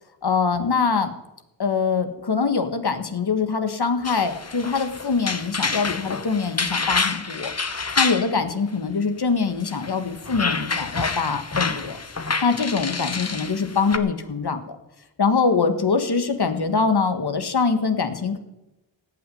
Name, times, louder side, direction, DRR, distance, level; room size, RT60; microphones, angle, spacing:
voice 1, 0.2-1.1 1.6-7.5 8.0-12.0 12.4-14.8 15.2-18.4, left 5 dB, 60° left, 8 dB, 1.7 m, -23 dB
sound 1, 4.0-8.3 9.6-14.0, left 4 dB, 35° left, 1.2 m, -28 dB
17.5 x 6.3 x 9.4 m, 0.95 s
cardioid pair, 55°, 45 cm